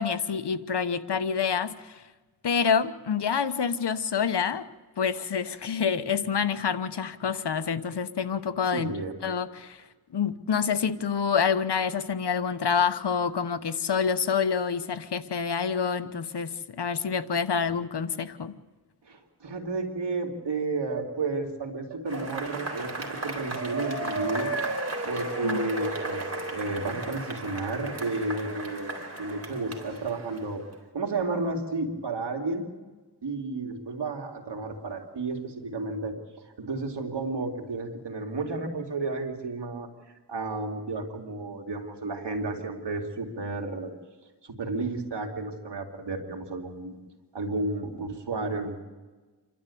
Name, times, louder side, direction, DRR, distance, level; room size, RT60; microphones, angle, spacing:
voice 1, 0.0-2.0 2.4-4.6 5.0-8.9 9.2-9.8 10.1-18.6 25.4-25.7, left 6 dB, 75° left, 11 dB, 1.1 m, -27 dB
voice 2, 8.7-9.2 19.1-24.5 25.0-26.2 26.5-28.9 29.2-30.6 30.9-32.7 33.2-36.2 36.6-39.9 40.3-43.9 44.6-46.9 47.3-48.8, right 3 dB, 90° right, 2 dB, 2.7 m, -32 dB
Cheering / Applause / Crowd, 22.1-30.7, right 2 dB, 40° right, 3.9 m, -34 dB
28.0 x 12.5 x 8.5 m, 1.3 s
wide cardioid pair, 60°, 41 cm